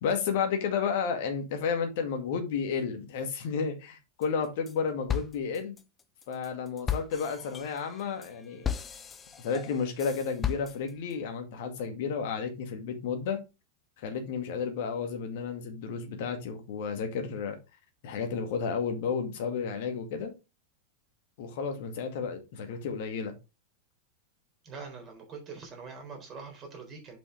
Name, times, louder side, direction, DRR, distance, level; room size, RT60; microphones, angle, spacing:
voice 1, 0.0-5.8 6.3-8.7 9.4-13.4 14.0-17.6 18.0-20.3 21.4-23.3, left 6 dB, 50° left, 2.0 m, -32 dB
sound 1, 4.2-4.8 5.1-11.1, left 8 dB, 20° left, 0.8 m, -36 dB
voice 2, 24.6-27.2, right 5 dB, 30° right, 3.7 m, -44 dB
7.3 x 5.5 x 3.3 m
figure-of-eight pair, 90°, 0 cm